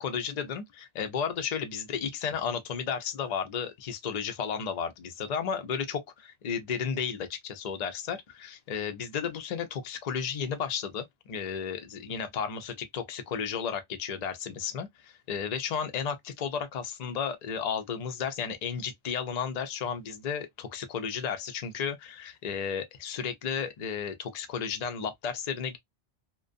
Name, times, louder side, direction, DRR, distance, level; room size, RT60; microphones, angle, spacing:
voice 1, 0.0-25.8, left 7 dB, 50° left, 0.5 m, -33 dB
2.4 x 2.2 x 2.3 m
omnidirectional pair, 1.2 m